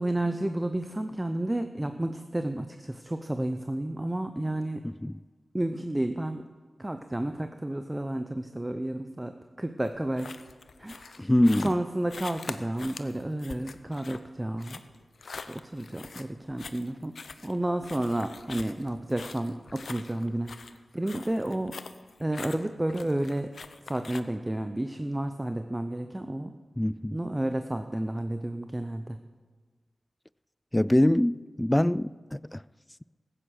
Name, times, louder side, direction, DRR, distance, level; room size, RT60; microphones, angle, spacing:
voice 1, 0.0-4.8 5.5-6.4 6.8-10.4 10.8-11.3 11.6-14.8 15.5-17.1 17.4-21.8 22.2-23.5 23.9-26.5 27.1-29.2, right 1 dB, 20° right, 0.7 m, -31 dB
sound 1, 9.8-24.2, left 4 dB, 70° left, 0.6 m, -44 dB
voice 2, 11.2-11.7 26.8-27.2 30.7-32.6, left 1 dB, 15° left, 0.3 m, -24 dB
15.0 x 8.9 x 6.5 m
cardioid pair, 40°, 0 cm